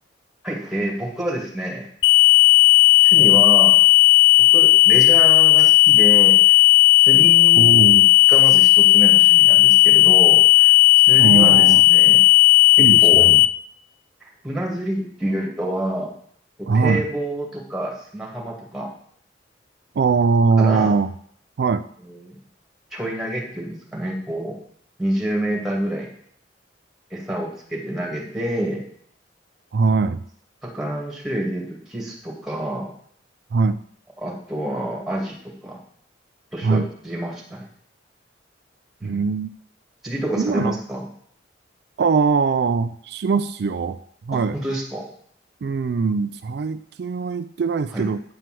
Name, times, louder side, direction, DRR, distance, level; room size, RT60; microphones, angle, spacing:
voice 1, 0.4-1.9 3.0-3.8 4.4-6.6 7.0-7.7 8.3-10.7 11.1-12.2 12.8-13.3 14.2-16.1 16.6-18.9 20.6-20.9 22.0-22.4 22.9-24.6 25.0-26.1 27.1-28.8 30.6-32.9 34.2-35.8 36.5-37.7 39.0-39.2 40.0-41.0 44.3-45.0 47.9-48.1, right 1 dB, ahead, -1 dB, 2.3 m, -28 dB
sound 1, 2.0-13.5, left 19 dB, 80° left, 0.5 m, -13 dB
voice 2, 7.6-8.1 11.2-11.8 12.8-13.4 16.7-17.1 20.0-21.1 21.6-21.9 29.7-30.2 33.5-33.8 36.6-36.9 39.0-39.5 40.4-40.8 42.0-44.0 44.2-44.6 45.6-48.2, right 4 dB, 60° right, 11 dB, 0.4 m, -21 dB
9.6 x 4.5 x 7.6 m, 0.62 s
head